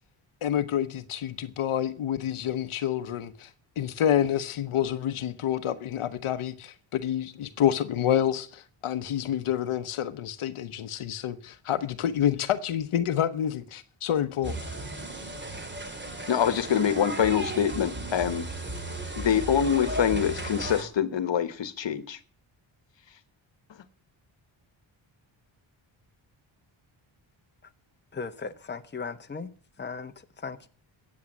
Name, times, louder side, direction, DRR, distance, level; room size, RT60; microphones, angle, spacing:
voice 1, 0.4-3.5 3.8-14.7, left 10 dB, 85° left, 1.1 m, -28 dB
sound 1, 14.4-20.8, right 1 dB, 20° right, 2.7 m, -35 dB
voice 2, 16.3-18.4 19.2-22.2, left 8 dB, 60° left, 1.5 m, -25 dB
voice 3, 28.1-29.5 29.8-30.7, left 4 dB, 20° left, 1.1 m, -37 dB
14.5 x 8.6 x 7.5 m
wide cardioid pair, 115°, 49 cm